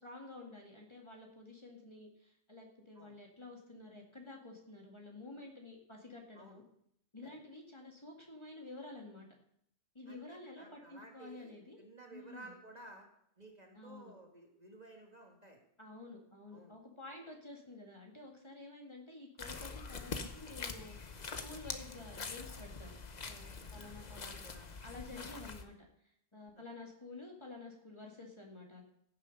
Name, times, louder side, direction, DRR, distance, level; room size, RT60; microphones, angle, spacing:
voice 1, 0.0-6.6 7.1-9.3 9.9-11.8 12.1-12.5 13.7-14.1 15.8-23.0 23.2-24.4 24.8-25.7 26.3-28.8, left 2 dB, 25° left, 0 dB, 2.1 m, -51 dB
voice 2, 10.1-13.1 13.4-15.6 16.5-16.7 23.6-24.8 25.2-25.3, right 2 dB, 35° right, 1 dB, 1.9 m, -55 dB
sound 1, 19.4-25.6, left 4 dB, 40° left, 1.0 m, -44 dB
15.5 x 7.1 x 5.4 m, 0.71 s
omnidirectional pair, 1.2 m